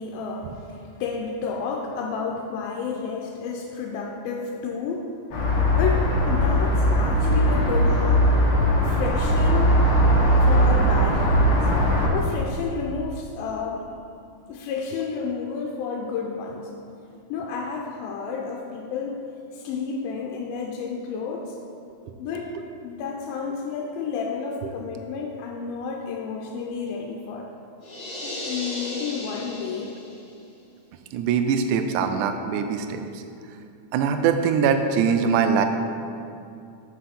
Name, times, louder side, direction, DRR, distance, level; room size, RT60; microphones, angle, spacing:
voice 1, 0.0-5.1 5.8-8.3 8.8-9.8 10.4-11.5 12.1-13.9 14.5-16.7 17.3-19.2 19.5-21.6 22.2-22.5 22.8-27.5 28.2-30.0, left 5 dB, 85° left, -1 dB, 2.4 m, -31 dB
sound 1, 5.3-12.1, equal, 60° left, 1.4 m, -19 dB
sound 2, 27.8-30.3, left 1 dB, 45° left, 2.1 m, -35 dB
voice 2, 31.1-33.0 33.9-35.7, right 6 dB, 80° right, 7 dB, 1.8 m, -22 dB
7.7 x 6.4 x 4.2 m, 2.5 s
omnidirectional pair, 4.1 m